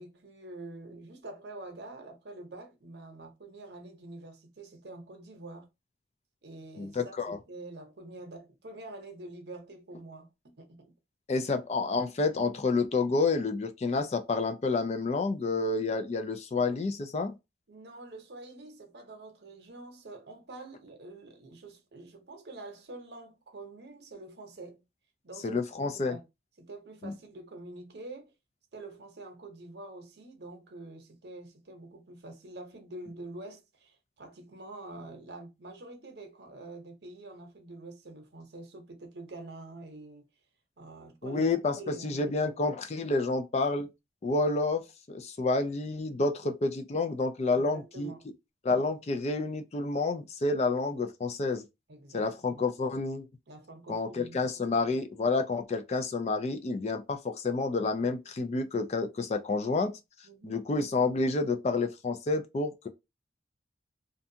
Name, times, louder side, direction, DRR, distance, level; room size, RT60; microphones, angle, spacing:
voice 1, 0.0-5.7 6.4-10.3 10.6-10.9 17.7-24.8 25.2-26.2 26.6-28.3 28.7-40.2 40.8-42.3 46.4-46.5 47.4-48.3 51.9-52.7 53.5-54.4 60.2-60.6, right 2 dB, 70° right, 0.8 m, -46 dB
voice 2, 6.8-7.4 11.3-17.3 25.4-26.1 27.0-27.1 41.2-43.9 44.2-44.8 45.1-48.1 48.6-51.6 52.1-53.3 53.9-60.0 60.4-62.9, left 3 dB, 35° left, 0.3 m, -29 dB
2.6 x 2.2 x 2.7 m
head